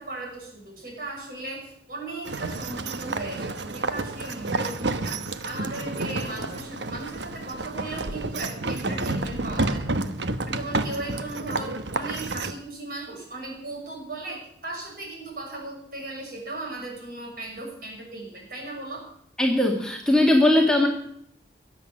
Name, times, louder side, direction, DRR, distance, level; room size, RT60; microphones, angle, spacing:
voice 1, 0.0-9.8 10.5-19.1, right 2 dB, 50° right, -2 dB, 6.5 m, -37 dB
sound 1, 2.2-12.5, right 2 dB, 75° right, 1.1 m, -30 dB
voice 2, 19.4-20.9, left 1 dB, 5° left, -1 dB, 1.8 m, -19 dB
22.0 x 8.3 x 7.2 m, 0.71 s
head